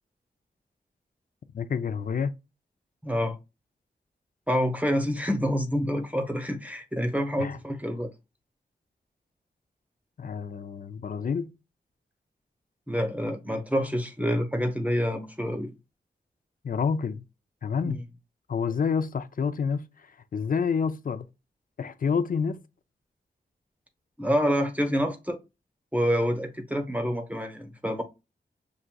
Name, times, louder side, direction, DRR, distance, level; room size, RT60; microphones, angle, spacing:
voice 1, 1.5-2.3 7.4-7.6 10.2-11.5 16.6-17.2 17.6-18.0 18.5-19.9 20.3-21.2 21.8-22.6, left 6 dB, 50° left, 0.5 m, -28 dB
voice 2, 3.0-3.4 4.5-8.1 12.9-15.7 17.8-18.0 24.2-25.4 25.9-28.0, equal, 10° right, 0.8 m, -27 dB
5.9 x 2.6 x 2.3 m
cardioid pair, 50°, 18 cm